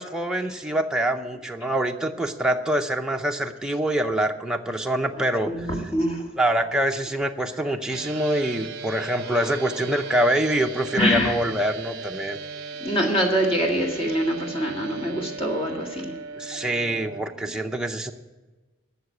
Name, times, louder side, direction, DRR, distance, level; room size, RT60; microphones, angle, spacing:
voice 1, 0.0-5.5 6.4-12.4 16.4-18.1, right 1 dB, 5° right, 3 dB, 0.6 m, -25 dB
voice 2, 5.5-6.4 9.2-9.5 11.0-11.4 12.8-16.1 16.4-16.7 17.5-17.6, equal, 25° left, 0 dB, 1.7 m, -25 dB
sound 1, 7.9-17.2, right 4 dB, 50° right, 0.7 m, -37 dB
13.0 x 6.7 x 8.3 m, 1.2 s
head